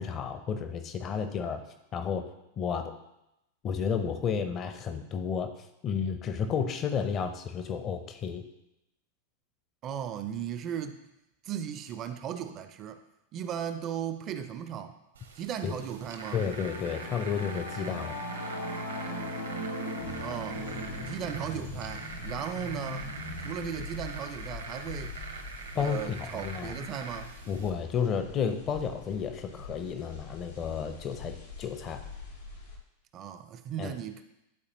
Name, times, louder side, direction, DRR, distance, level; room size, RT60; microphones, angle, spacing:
voice 1, 0.0-1.6 1.9-2.3 2.6-2.9 3.6-8.4 15.6-15.7 16.3-18.2 25.8-26.8 27.5-32.0 33.8-33.9, left 7 dB, 30° left, 7 dB, 0.5 m, -32 dB
voice 2, 9.8-11.0 11.4-13.0 13.3-15.0 15.3-16.4 20.2-20.6 21.1-23.1 23.4-25.2 25.7-27.3 33.1-34.2, right 9 dB, 35° right, 10 dB, 0.4 m, -36 dB
sound 1, 15.1-27.7, right 4 dB, 70° right, 0.9 m, -44 dB
Singing / Musical instrument, 15.6-25.3, equal, 90° left, 0.9 m, -40 dB
sound 2, 20.0-32.8, left 3 dB, 70° left, 2.0 m, -43 dB
11.5 x 4.0 x 3.0 m, 0.88 s
figure-of-eight pair, 90°, 0 cm